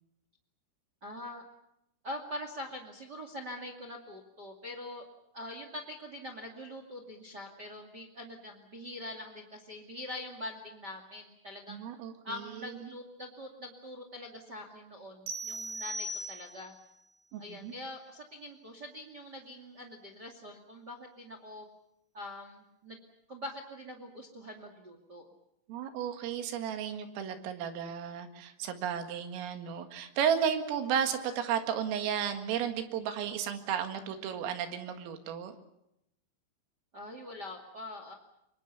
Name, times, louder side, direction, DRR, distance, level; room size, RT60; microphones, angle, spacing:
voice 1, 1.0-1.5 2.0-5.0 5.3-11.8 12.2-16.7 17.4-21.6 22.1-23.0 23.3-25.3 36.9-38.1, left 1 dB, 40° right, 5 dB, 1.5 m, -44 dB
voice 2, 11.7-12.7 17.3-17.7 25.7-35.5, right 8 dB, 80° right, 7 dB, 4.5 m, -33 dB
sound 1, 15.3-16.8, right 1 dB, 65° right, 4.7 m, -38 dB
25.5 x 23.0 x 7.0 m, 0.83 s
omnidirectional pair, 5.9 m